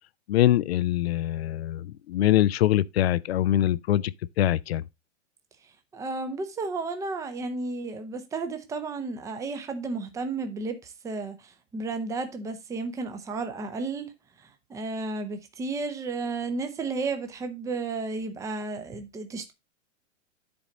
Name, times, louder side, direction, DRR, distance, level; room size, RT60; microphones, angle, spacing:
voice 1, 0.3-4.1 4.4-4.8, left 13 dB, 55° left, 0.5 m, -23 dB
voice 2, 5.9-14.1 14.7-19.5, right 3 dB, 10° right, 0.7 m, -33 dB
10.5 x 4.1 x 3.9 m
hypercardioid pair, 115°, 38 cm